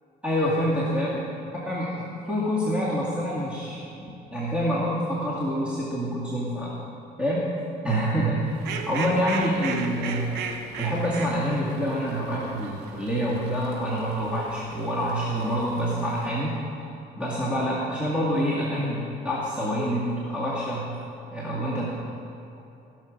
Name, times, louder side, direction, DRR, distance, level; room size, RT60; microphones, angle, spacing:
voice 1, 0.2-1.1 1.7-6.8 7.2-7.5 7.8-8.6 8.9-10.3 10.8-16.6 17.2-20.9 21.3-21.9, equal, 5° right, -8 dB, 2.1 m, -26 dB
Fowl, 8.5-16.3, right 5 dB, 90° right, 0.9 m, -37 dB
16.5 x 6.7 x 5.2 m, 2.9 s
cardioid pair, 110°, 17 cm